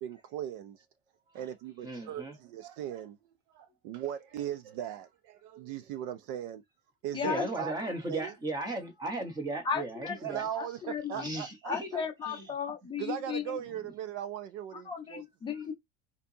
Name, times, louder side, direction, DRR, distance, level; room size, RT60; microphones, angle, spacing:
voice 1, 0.0-0.8 1.3-3.2 3.5-6.6 7.0-7.7 8.1-8.3 10.2-12.0 13.0-15.2, right 10 dB, 50° right, 0.5 m, -38 dB
voice 2, 1.8-2.4 7.2-10.5 11.1-11.9 12.3-12.4, right 2 dB, 10° right, 0.9 m, -36 dB
voice 3, 7.1-7.5 9.6-10.2 10.5-11.3 11.6-13.6 14.8-15.7, left 7 dB, 15° left, 0.6 m, -35 dB
4.3 x 4.1 x 2.7 m
cardioid pair, 175°, 34 cm